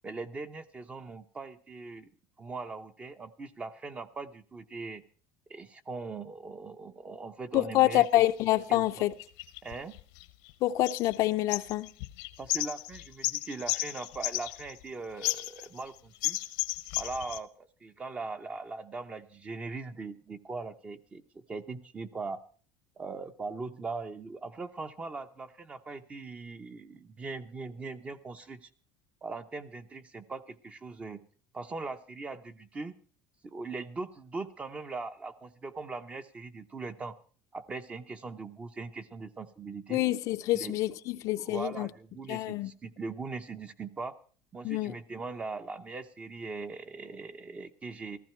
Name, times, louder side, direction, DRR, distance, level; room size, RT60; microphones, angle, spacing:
voice 1, 0.0-2.1 2.4-5.0 5.5-8.3 8.7-9.1 9.6-10.0 12.4-16.4 17.0-22.4 23.0-28.7 29.2-31.2 31.5-32.9 33.4-37.2 37.5-40.0 40.5-40.8 41.4-44.2 44.5-48.2, right 3 dB, 15° right, 0.8 m, -40 dB
voice 2, 7.5-9.1 10.6-11.9 39.9-41.9 42.3-42.7 44.6-44.9, left 15 dB, 50° left, 0.6 m, -27 dB
sound 1, 8.1-8.3 9.0-10.5 10.8-11.2 11.5-14.9 15.2-15.9 16.2-17.4, left 22 dB, 80° left, 1.0 m, -34 dB
15.5 x 14.5 x 4.5 m
cardioid pair, 165°, 7 cm